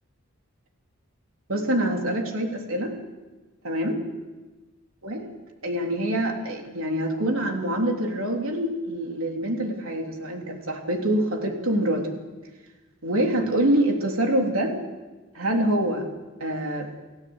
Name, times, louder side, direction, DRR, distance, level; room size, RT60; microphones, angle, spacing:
voice 1, 1.5-2.9 3.6-4.0 5.0-5.3 5.6-12.1 13.0-14.7 15.3-16.0 16.4-16.9, right 1 dB, 75° right, 2 dB, 3.4 m, -25 dB
29.5 x 15.5 x 8.1 m, 1.2 s
head